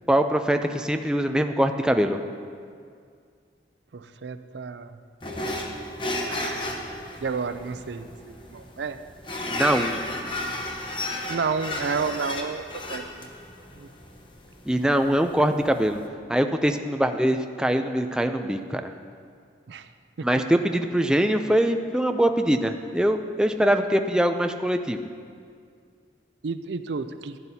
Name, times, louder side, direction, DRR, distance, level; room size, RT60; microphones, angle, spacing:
voice 1, 0.1-2.2 9.5-10.0 14.7-16.0 16.3-18.9 20.2-25.1, right 1 dB, 5° right, 6 dB, 0.4 m, -23 dB
voice 2, 3.9-5.0 6.3-6.7 7.2-9.0 11.3-13.3 13.7-13.9 19.7-19.9 20.2-20.3 26.4-27.4, right 5 dB, 80° right, 11 dB, 0.4 m, -31 dB
sound 1, 5.2-16.0, left 1 dB, 30° left, 0.9 m, -34 dB
15.0 x 10.5 x 2.8 m, 2.2 s
head